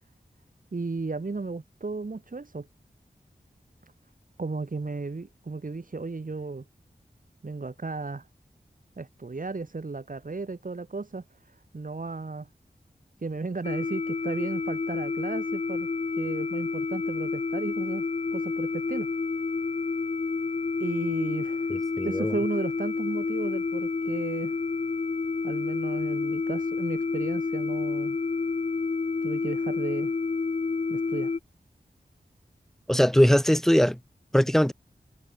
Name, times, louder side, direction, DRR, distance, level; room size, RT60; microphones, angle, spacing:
voice 1, 0.7-2.7 4.4-6.6 7.4-8.3 9.0-12.5 13.2-15.9 16.2-18.1 18.3-19.1 20.8-21.7 22.0-24.6 25.4-28.2 29.2-30.1 30.9-31.3, right 3 dB, 55° right, 5.0 m, -34 dB
sound 1, 13.6-31.4, left 4 dB, 40° left, 0.6 m, -29 dB
voice 2, 21.7-22.3 32.9-34.0 34.3-34.7, equal, ahead, 0.7 m, -21 dB
wide cardioid pair, 85°, 17 cm